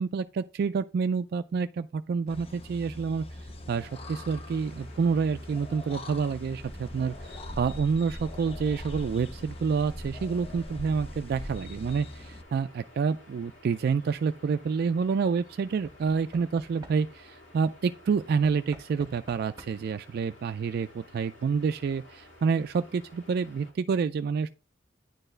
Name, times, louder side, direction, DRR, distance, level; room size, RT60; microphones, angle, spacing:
voice 1, 0.0-3.2 3.7-24.5, right 5 dB, 55° right, 0.3 m, -28 dB
sound 1, 2.3-12.4, left 1 dB, 30° left, 0.7 m, -41 dB
sound 2, 3.8-23.7, left 1 dB, 85° left, 2.4 m, -54 dB
Knock / Wood, 13.7-14.1 15.8-17.4 18.4-20.0 21.1-21.2 21.4-21.5, right 2 dB, 20° right, 1.5 m, -51 dB
9.8 x 4.5 x 3.2 m
head